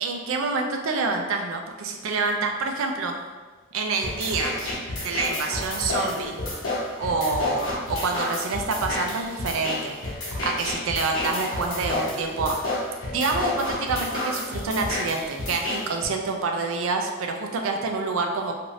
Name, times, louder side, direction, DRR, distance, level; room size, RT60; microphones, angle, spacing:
voice 1, 0.0-3.1 3.7-4.6 5.0-6.4 7.0-9.9 10.4-12.6 13.1-18.5, right 4 dB, 85° right, 3 dB, 0.4 m, -27 dB
sound 1, 4.0-16.0, left 2 dB, 70° left, 1.0 m, -30 dB
2.6 x 2.5 x 3.1 m, 1.3 s
head